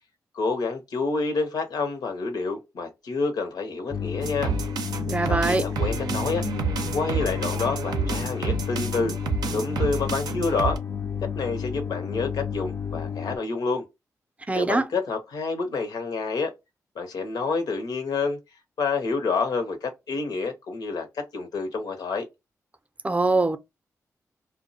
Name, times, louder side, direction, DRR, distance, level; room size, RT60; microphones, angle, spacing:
voice 1, 0.3-4.5 5.3-6.5 6.9-9.1 9.5-10.8 11.2-13.8 14.5-16.5 17.0-18.4 18.8-22.3, left 4 dB, 80° left, 0.7 m, -28 dB
sound 1, 3.9-13.4, left 7 dB, 40° left, 0.4 m, -31 dB
sound 2, 4.2-10.8, right 5 dB, 80° right, 0.5 m, -30 dB
voice 2, 5.1-5.7 14.5-14.9 23.0-23.6, right 3 dB, 20° right, 0.5 m, -23 dB
2.3 x 2.1 x 2.6 m
cardioid pair, 50°, 7 cm